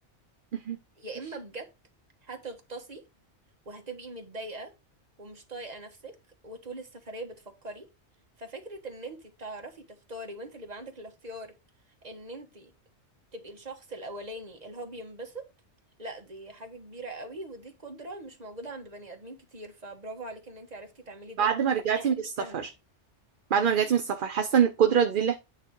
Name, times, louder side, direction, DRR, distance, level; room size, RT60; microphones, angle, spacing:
voice 1, 1.0-1.7 2.2-3.0 3.6-4.7 5.2-6.1 6.4-7.9 8.4-11.5 12.0-12.7 13.3-15.4 16.0-21.5 21.9-22.7, right 2 dB, 35° right, 1.5 m, -41 dB
voice 2, 21.4-22.7 23.5-25.3, right 8 dB, 50° right, 0.8 m, -24 dB
9.0 x 3.5 x 4.6 m
omnidirectional pair, 1.2 m